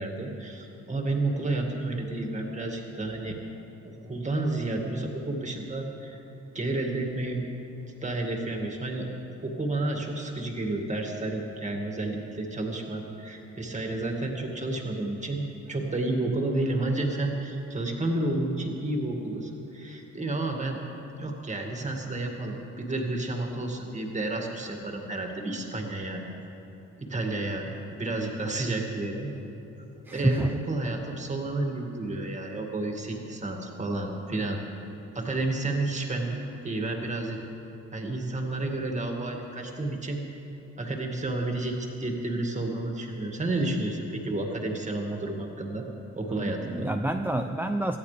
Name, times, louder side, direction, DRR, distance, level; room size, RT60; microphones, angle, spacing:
voice 1, 0.0-3.4 4.0-6.2 6.5-7.4 8.0-9.1 9.4-20.8 21.2-26.2 27.0-27.7 27.9-29.3 30.1-34.6 35.1-36.4 36.6-37.4 37.9-40.2 40.8-45.9 46.2-46.9, right 2 dB, 25° right, 1 dB, 2.2 m, -31 dB
voice 2, 30.1-30.6 46.3-48.0, right 1 dB, 5° right, 5 dB, 0.5 m, -28 dB
18.5 x 14.0 x 3.4 m, 2.9 s
cardioid pair, 90°, 30 cm